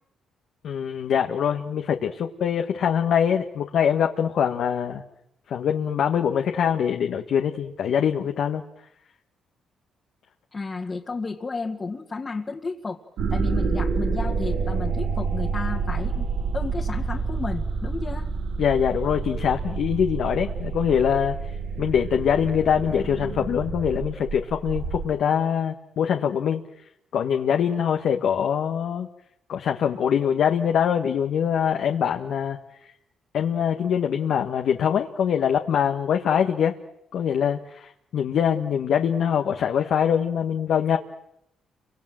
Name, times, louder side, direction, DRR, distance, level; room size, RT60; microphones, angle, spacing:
voice 1, 0.6-5.0 5.5-8.6 18.6-21.4 21.8-26.6 27.1-29.1 29.5-32.6 32.8-32.9 33.3-36.8 37.1-41.0, left 8 dB, 70° left, 4 dB, 1.6 m, -23 dB
voice 2, 10.5-13.0 13.3-16.3 16.5-18.3, left 4 dB, 30° left, 1 dB, 2.1 m, -32 dB
sound 1, 13.2-25.1, right 4 dB, 75° right, 4.1 m, -28 dB
30.0 x 24.5 x 7.7 m, 0.80 s
cardioid pair, 90°, 0 cm